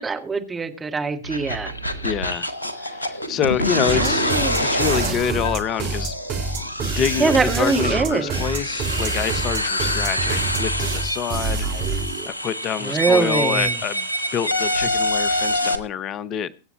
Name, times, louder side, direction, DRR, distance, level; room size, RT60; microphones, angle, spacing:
voice 1, 0.0-1.7 3.9-4.7 5.0-5.3 7.2-8.4 12.8-13.8, right 4 dB, 15° right, 1.6 m, -23 dB
sound 1, 1.2-15.8, left 1 dB, 80° left, 1.1 m, -26 dB
voice 2, 2.0-2.5 2.8-4.3 4.6-6.2 6.8-16.5, left 8 dB, 30° left, 0.6 m, -27 dB
sound 2, 3.9-12.3, right 4 dB, 40° right, 1.9 m, -27 dB
23.5 x 8.0 x 2.9 m
figure-of-eight pair, 90°, 0 cm